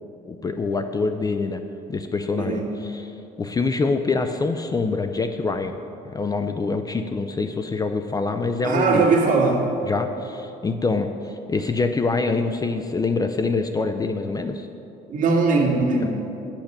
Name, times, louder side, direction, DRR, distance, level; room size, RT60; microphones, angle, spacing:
voice 1, 0.3-1.6 1.9-3.1 3.4-5.8 6.0-9.1 9.8-14.7 16.0-16.1, left 3 dB, 20° left, 7 dB, 0.4 m, -25 dB
voice 2, 2.4-2.7 8.6-9.7 15.1-16.1, right 3 dB, 50° right, -1 dB, 2.0 m, -20 dB
10.0 x 5.8 x 6.6 m, 2.8 s
cardioid pair, 110°, 17 cm